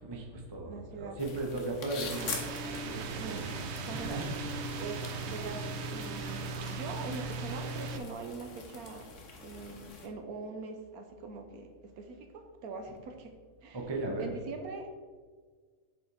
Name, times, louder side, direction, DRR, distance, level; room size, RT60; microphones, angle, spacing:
voice 1, 0.0-3.5 3.9-4.4 13.7-14.3, right 2 dB, 25° right, 1 dB, 0.6 m, -37 dB
voice 2, 0.7-1.2 3.2-4.2 4.8-9.1 9.4-13.3 13.6-13.8 14.2-14.9, right 4 dB, 65° right, 5 dB, 1.1 m, -43 dB
sound 1, 1.2-10.1, left 4 dB, 55° left, 1.2 m, -45 dB
sound 2, 2.1-8.0, right 3 dB, 90° right, 0.6 m, -38 dB
7.5 x 4.1 x 4.0 m, 1.5 s
omnidirectional pair, 1.8 m